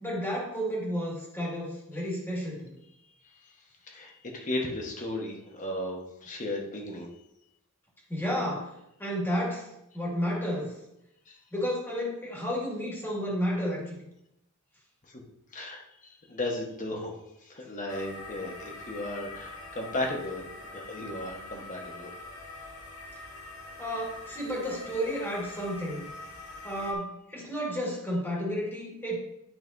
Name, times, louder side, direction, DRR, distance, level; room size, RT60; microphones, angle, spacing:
voice 1, 0.0-2.8 8.1-8.7 9.0-10.7 11.5-14.0 23.8-26.1 26.6-29.2, equal, 10° left, -4 dB, 2.1 m, -32 dB
voice 2, 3.8-7.1 11.3-11.4 15.1-15.2 15.5-20.4 20.7-22.1, left 1 dB, 35° left, 1 dB, 1.3 m, -35 dB
sound 1, 17.9-26.9, left 2 dB, 85° left, 1.5 m, -44 dB
11.0 x 5.7 x 2.7 m, 0.82 s
head